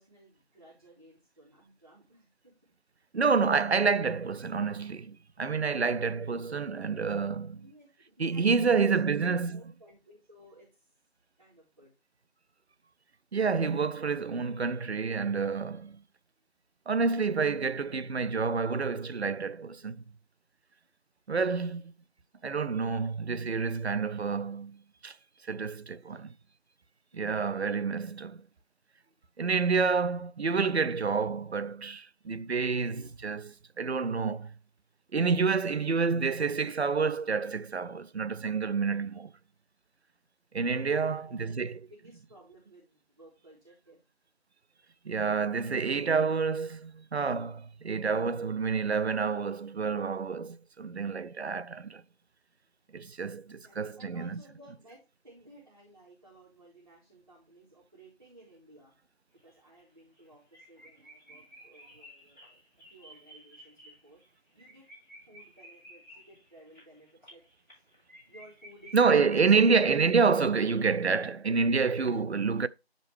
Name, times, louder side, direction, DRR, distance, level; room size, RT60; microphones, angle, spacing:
voice 1, 0.0-2.6 7.5-9.2 9.5-10.9 11.4-11.9 21.5-22.2 25.8-26.2 27.1-27.2 32.1-32.3 32.8-33.1 40.8-44.0 53.5-58.9 59.3-62.6 62.9-64.2 64.5-64.9 65.3-67.8 68.3-69.8, right 1 dB, 35° right, 4.0 m, -57 dB
voice 2, 3.1-7.7 8.2-9.6 13.3-16.0 16.9-20.0 21.3-21.9 22.4-25.2 25.4-26.3 27.1-28.5 29.4-34.5 35.1-39.3 40.5-41.8 45.0-52.0 52.9-54.4 68.9-72.7, right 5 dB, 85° right, 0.6 m, -28 dB
sound 1, 59.4-59.5 59.8-59.9 60.2-60.3 60.5-70.3 70.6-70.7, right 1 dB, ahead, 5.2 m, -54 dB
10.5 x 5.3 x 3.1 m
figure-of-eight pair, 175°, 32 cm